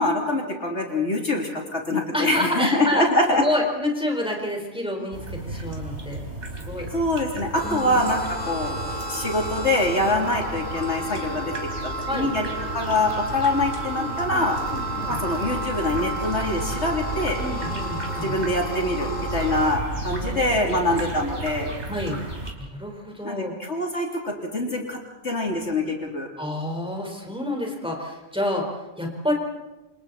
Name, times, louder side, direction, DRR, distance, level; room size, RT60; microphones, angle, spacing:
voice 1, 0.0-3.4 5.5-5.6 6.9-8.8 9.1-11.5 11.8-14.6 15.1-17.4 18.2-21.7 23.2-26.3, left 1 dB, 60° left, 0 dB, 3.6 m, -24 dB
voice 2, 2.1-3.0 3.3-6.2 6.6-6.9 7.6-8.1 10.1-10.2 12.0-12.3 14.0-15.2 17.4-18.4 20.1-20.9 21.9-22.2 22.6-23.5 26.4-29.3, left 1 dB, 5° right, 1 dB, 4.5 m, -29 dB
sound 1, 5.1-22.5, right 2 dB, 55° right, 4.2 m, -34 dB
sound 2, 7.5-19.8, right 1 dB, 35° left, 3.1 m, -32 dB
28.5 x 28.0 x 4.3 m, 1.0 s
omnidirectional pair, 1.3 m